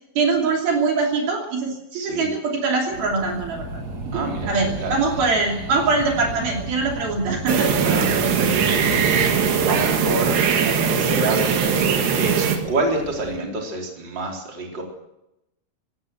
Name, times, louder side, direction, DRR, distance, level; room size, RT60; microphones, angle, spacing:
voice 1, 0.2-3.6 4.1-7.8, right 4 dB, 65° right, 0 dB, 4.8 m, -23 dB
voice 2, 1.9-2.3 4.1-4.5 4.8-4.9 7.7-11.5 11.8-14.8, right 2 dB, 25° right, 0 dB, 4.5 m, -28 dB
sound 1, 2.9-13.4, right 2 dB, 45° right, 4.7 m, -34 dB
sound 2, 7.5-12.6, right 6 dB, 85° right, 4.2 m, -20 dB
19.5 x 16.5 x 8.0 m, 0.87 s
omnidirectional pair, 4.6 m